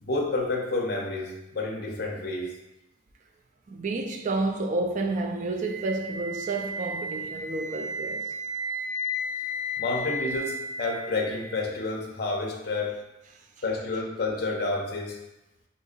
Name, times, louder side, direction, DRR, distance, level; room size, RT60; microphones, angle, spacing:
voice 1, 0.0-2.5 9.8-13.0 13.6-15.2, left 2 dB, 50° left, 0.5 m, -29 dB
voice 2, 3.7-8.3, right 2 dB, 40° right, 0.3 m, -30 dB
Wind instrument woodwind instrument, 5.6-11.6, left 1 dB, 80° right, 0.9 m, -34 dB
2.7 x 2.5 x 3.8 m
head